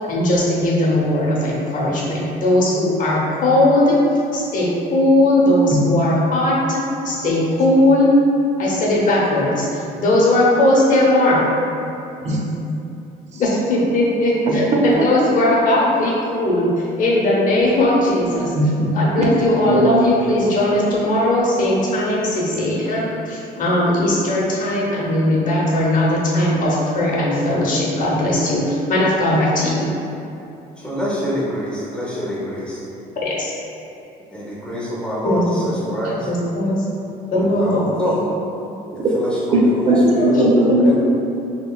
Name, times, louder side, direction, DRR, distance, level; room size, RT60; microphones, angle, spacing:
voice 1, 0.0-4.0 4.3-8.1 8.6-11.5 13.4-18.5 18.9-29.8 33.2-33.5 35.2-36.0 36.3-36.9 37.3-38.2 39.9-40.4 40.8-40.9, left 1 dB, 50° left, -4 dB, 0.7 m, -18 dB
voice 2, 14.5-15.1 18.5-19.0 19.3-20.0 37.3-37.4 39.5-40.9, right 1 dB, 45° right, -2 dB, 0.5 m, -18 dB
voice 3, 30.8-32.8 34.3-35.4 35.6-36.3 37.5-38.2 39.1-39.3 40.1-40.3 40.8-40.9, equal, 5° left, -8 dB, 0.6 m, -26 dB
2.9 x 2.7 x 2.3 m, 2.8 s
cardioid pair, 110°, 17 cm